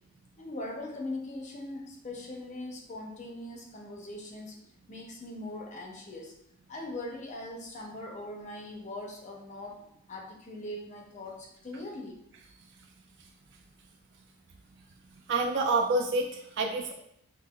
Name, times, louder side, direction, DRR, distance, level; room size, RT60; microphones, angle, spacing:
voice 1, 0.4-4.5 4.9-6.3 6.7-9.8 10.1-12.2, left 1 dB, 30° left, 0 dB, 0.5 m, -40 dB
voice 2, 15.3-16.9, right 3 dB, 50° right, 3 dB, 0.3 m, -27 dB
5.4 x 2.2 x 2.2 m, 0.77 s
head